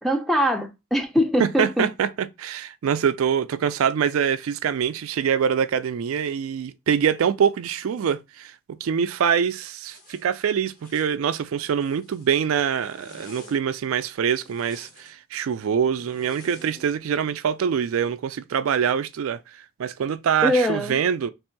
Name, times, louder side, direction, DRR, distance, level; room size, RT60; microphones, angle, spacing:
voice 1, 0.0-1.9 20.4-21.0, equal, ahead, 0.5 m, -22 dB
voice 2, 1.4-19.4 19.8-21.3, right 7 dB, 80° right, 0.4 m, -24 dB
Zipper (clothing), 9.9-10.2 10.7-11.1 11.6-12.3 12.7-13.6 14.2-15.1 15.9-16.9, left 2 dB, 40° left, 1.2 m, -48 dB
3.3 x 2.6 x 4.5 m
head